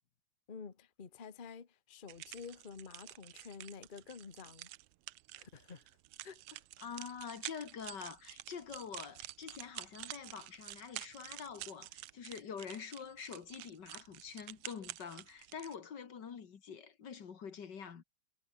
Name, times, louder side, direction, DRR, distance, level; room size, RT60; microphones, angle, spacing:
voice 1, 0.5-4.7 5.4-5.8 6.2-6.6, left 5 dB, 80° left, 0.4 m, -50 dB
sound 1, 2.1-15.8, right 17 dB, 85° right, 1.3 m, -49 dB
voice 2, 6.8-18.0, left 7 dB, 45° left, 1.9 m, -46 dB
omnidirectional pair, 3.3 m